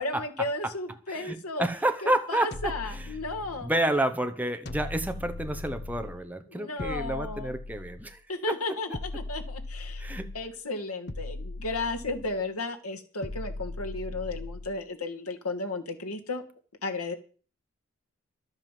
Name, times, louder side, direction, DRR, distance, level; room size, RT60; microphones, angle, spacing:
voice 1, 0.0-1.7 2.0-3.7 6.5-7.5 8.3-10.1 10.3-16.4 16.8-17.1, left 3 dB, 90° left, 4 dB, 2.2 m, -34 dB
voice 2, 1.1-3.0 3.6-8.2 8.5-8.6 10.0-10.3, right 1 dB, 5° right, 7 dB, 1.0 m, -29 dB
sound 1, 2.5-3.8 4.7-6.3 6.8-8.2 8.9-10.5 11.1-12.5 13.2-14.8, left 2 dB, 50° left, 0.9 m, -39 dB
12.5 x 8.0 x 7.6 m, 0.40 s
head